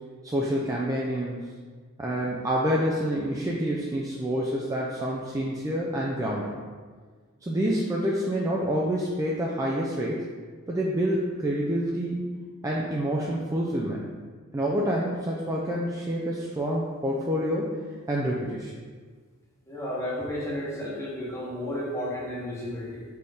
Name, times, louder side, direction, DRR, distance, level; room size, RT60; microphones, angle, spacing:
voice 1, 0.2-1.5 2.0-6.6 7.4-10.2 10.7-12.3 12.6-14.1 14.5-17.8 18.1-18.7, equal, 15° right, -4 dB, 0.3 m, -27 dB
voice 2, 19.6-23.0, left 1 dB, 15° left, -6 dB, 1.0 m, -32 dB
4.2 x 3.4 x 3.5 m, 1.5 s
head